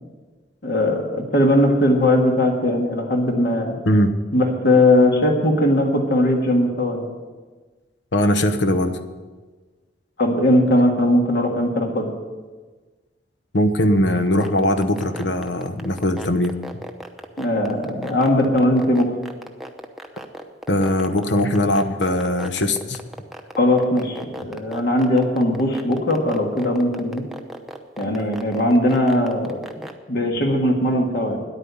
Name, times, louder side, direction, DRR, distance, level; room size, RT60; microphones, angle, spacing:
voice 1, 0.6-3.8 4.3-7.1 10.2-12.1 17.4-19.1 23.6-27.2 28.0-29.6 30.1-31.4, left 1 dB, 55° left, 1 dB, 1.7 m, -19 dB
voice 2, 8.1-9.0 13.5-16.5 20.7-23.0, left 1 dB, 75° left, 9 dB, 1.0 m, -20 dB
sound 1, 14.3-29.9, equal, ahead, 0.8 m, -35 dB
10.0 x 9.1 x 8.2 m, 1.3 s
head